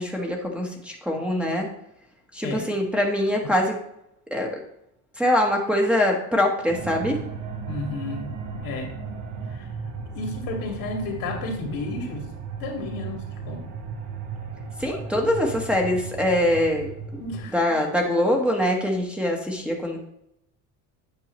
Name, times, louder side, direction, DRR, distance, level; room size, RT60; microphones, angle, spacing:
voice 1, 0.0-1.7 2.3-3.8 4.3-4.6 5.2-7.2 14.8-17.2 17.5-20.1, left 1 dB, 5° right, -1 dB, 1.2 m, -23 dB
sound 1, 6.7-17.5, right 5 dB, 70° right, 1.2 m, -35 dB
voice 2, 7.7-8.3 8.6-8.9 9.5-9.7 10.1-12.2 12.6-13.6 17.2-17.6, left 3 dB, 70° left, 1 dB, 2.2 m, -32 dB
8.9 x 5.5 x 3.1 m, 0.79 s
cardioid pair, 120°, 35 cm